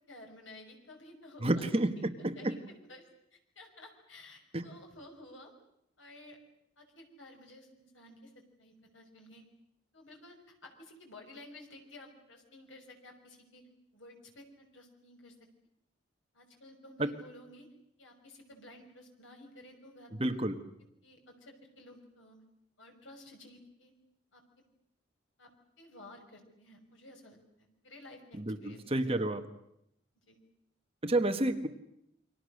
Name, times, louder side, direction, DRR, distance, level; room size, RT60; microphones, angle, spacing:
voice 1, 0.1-2.1 2.4-2.6 2.9-5.5 6.0-6.4 6.8-9.4 9.9-13.6 13.9-15.3 16.3-17.7 18.0-20.4 21.0-22.4 22.8-23.9 24.3-24.4 25.4-25.5 25.8-29.3 30.3-30.4, left 1 dB, 75° left, 3 dB, 6.0 m, -53 dB
voice 2, 1.4-2.5 4.5-4.6 17.0-17.1 20.2-20.6 28.4-29.4 31.0-31.7, right 1 dB, 30° right, 7 dB, 1.5 m, -30 dB
29.0 x 24.5 x 6.6 m, 0.80 s
head